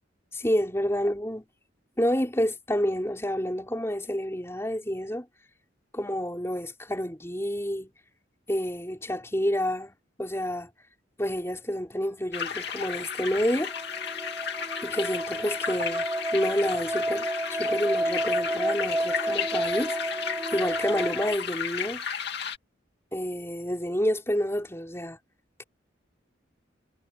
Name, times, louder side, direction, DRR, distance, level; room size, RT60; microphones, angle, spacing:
voice 1, 0.3-1.4 2.0-5.3 5.9-7.9 8.5-10.7 11.2-13.7 14.8-16.1 16.3-17.3 17.6-20.0 20.5-22.0 23.1-25.2, equal, 15° left, 5.5 m, -29 dB
sound 1, 12.3-22.6, left 7 dB, 55° left, 2.6 m, -34 dB
sound 2, 13.0-21.3, right 1 dB, 10° right, 4.0 m, -31 dB
head